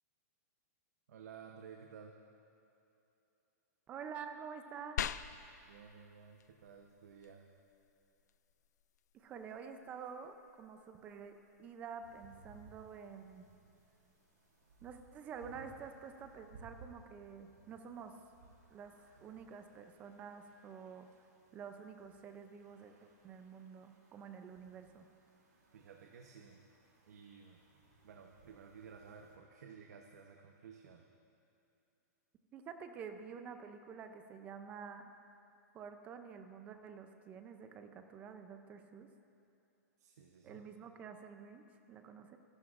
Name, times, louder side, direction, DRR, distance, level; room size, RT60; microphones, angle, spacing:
voice 1, 1.1-2.2 5.6-7.6 25.7-26.7 27.1-27.6 28.0-31.1 40.0-40.7, right 6 dB, 70° right, 2 dB, 0.9 m, -55 dB
voice 2, 3.9-5.0 9.1-13.5 14.8-18.2 18.7-18.9 19.2-21.1 21.5-25.1 32.5-35.1 35.7-39.1 40.4-42.4, right 6 dB, 15° right, 7 dB, 0.4 m, -49 dB
sound 1, 5.0-15.0, left 10 dB, 75° left, 0.4 m, -49 dB
sound 2, 12.0-29.4, right 3 dB, 85° right, 3.0 m, -63 dB
25.0 x 11.5 x 2.5 m, 2.8 s
hypercardioid pair, 170°, 9 cm